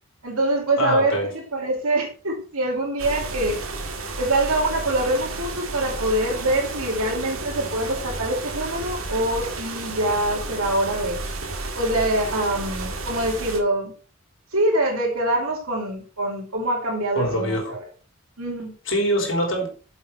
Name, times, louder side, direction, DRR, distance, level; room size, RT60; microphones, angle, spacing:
voice 1, 0.2-3.6 4.2-11.2 11.7-13.9 14.5-17.8 18.4-18.7, right 1 dB, 85° right, 2.7 m, -24 dB
voice 2, 0.8-1.3 17.2-17.7 18.9-19.7, equal, 60° left, 3.5 m, -23 dB
sound 1, 3.0-13.6, right 3 dB, 70° right, 2.0 m, -32 dB
9.2 x 7.2 x 4.5 m
head